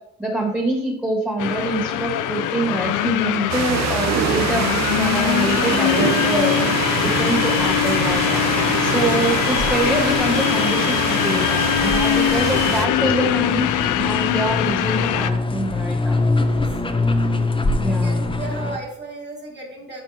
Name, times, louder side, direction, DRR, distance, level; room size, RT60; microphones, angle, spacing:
voice 1, 0.2-6.6 7.0-8.4 8.8-16.2 17.8-18.2, right 2 dB, 5° right, 0 dB, 1.8 m, -25 dB
sound 1, 1.4-15.3, left 12 dB, 85° left, 0.5 m, -22 dB
sound 2, 3.5-12.9, right 9 dB, 60° right, 0.6 m, -25 dB
sound 3, 7.5-18.8, left 2 dB, 15° left, 0.7 m, -25 dB
voice 2, 17.8-20.0, right 3 dB, 35° right, -2 dB, 2.4 m, -35 dB
12.0 x 4.3 x 2.8 m, 0.82 s
cardioid pair, 90°, 30 cm